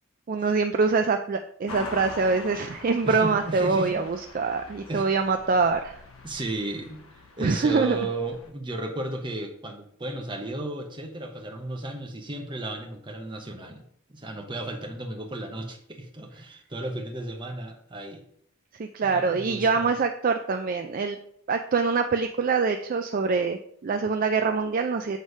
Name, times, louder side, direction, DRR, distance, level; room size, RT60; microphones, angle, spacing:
voice 1, 0.3-6.0 7.4-8.0 18.8-21.2 21.5-25.2, right 4 dB, 40° right, 6 dB, 0.3 m, -24 dB
sound 1, 1.7-8.5, left 2 dB, 75° left, 0.9 m, -43 dB
voice 2, 3.0-4.0 4.8-5.1 6.2-7.0 7.4-13.8 14.1-18.2 19.0-19.9, right 2 dB, 20° right, 3 dB, 0.9 m, -34 dB
8.0 x 3.2 x 5.4 m, 0.68 s
head